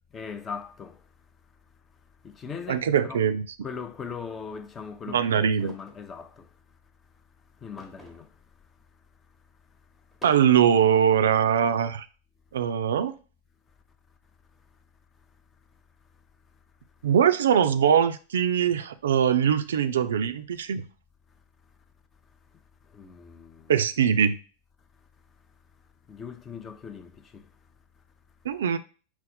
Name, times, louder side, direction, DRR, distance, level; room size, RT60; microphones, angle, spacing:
voice 1, 0.1-0.9 2.2-3.2 3.6-6.4 7.6-8.3 22.9-23.6 26.1-27.4, left 6 dB, 25° left, 0.5 m, -39 dB
voice 2, 2.7-3.4 5.1-5.7 10.2-12.1 12.5-13.1 17.0-20.8 23.7-24.4 28.5-28.8, right 8 dB, 70° right, 0.3 m, -22 dB
sound 1, 5.6-6.1 7.8-8.4 8.8-8.9 10.0-10.8, equal, 5° left, 0.9 m, -50 dB
4.2 x 2.0 x 4.2 m
hypercardioid pair, 95°, 0 cm